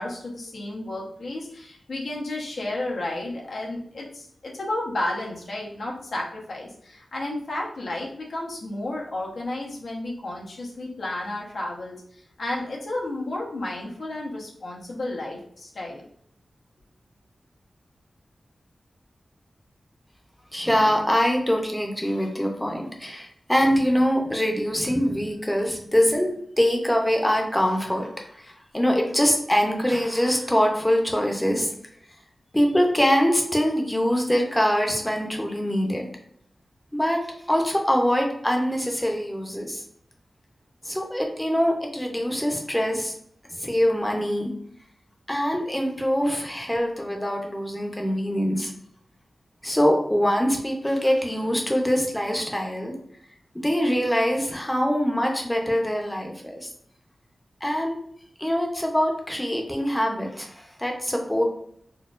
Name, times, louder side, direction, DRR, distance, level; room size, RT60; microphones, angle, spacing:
voice 1, 0.0-16.1, left 1 dB, 80° left, -3 dB, 0.9 m, -32 dB
voice 2, 20.5-31.7 32.5-36.1 36.9-37.2 37.5-39.8 40.8-43.1 43.6-44.5 45.3-48.7 49.6-52.9 53.5-56.7 57.6-58.0 58.4-61.4, equal, 10° left, 1 dB, 0.7 m, -23 dB
4.3 x 2.4 x 2.4 m, 0.68 s
wide cardioid pair, 115°, 0 cm